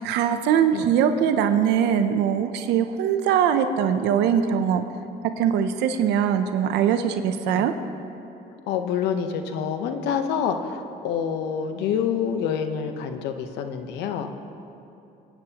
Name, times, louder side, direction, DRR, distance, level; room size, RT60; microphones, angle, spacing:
voice 1, 0.0-4.8 5.4-7.7, right 8 dB, 85° right, 8 dB, 0.6 m, -22 dB
voice 2, 8.7-14.3, left 7 dB, 90° left, 7 dB, 0.9 m, -27 dB
23.0 x 9.0 x 2.9 m, 2.8 s
cardioid pair, 110°, 17 cm